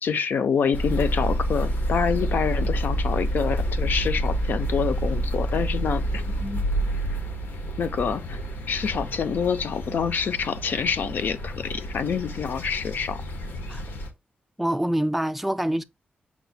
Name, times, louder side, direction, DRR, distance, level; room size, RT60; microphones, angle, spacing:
voice 1, 0.0-6.2 7.8-8.4 8.7-13.2, left 6 dB, 70° left, 0.5 m, -26 dB
sound 1, 0.7-14.1, equal, 90° left, 0.9 m, -28 dB
voice 2, 14.6-15.8, right 1 dB, 5° right, 0.3 m, -26 dB
5.9 x 2.1 x 4.0 m
wide cardioid pair, 140°, 3 cm